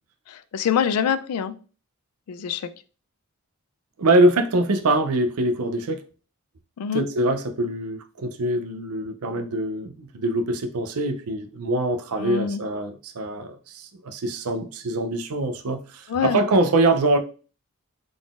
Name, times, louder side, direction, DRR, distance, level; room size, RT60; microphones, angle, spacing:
voice 1, 0.3-1.5 2.3-2.7 6.8-7.0 12.2-12.6 16.1-16.4, left 7 dB, 80° left, 0.4 m, -25 dB
voice 2, 4.0-6.0 6.9-17.2, right 2 dB, 75° right, 0.5 m, -23 dB
3.8 x 3.7 x 2.4 m
head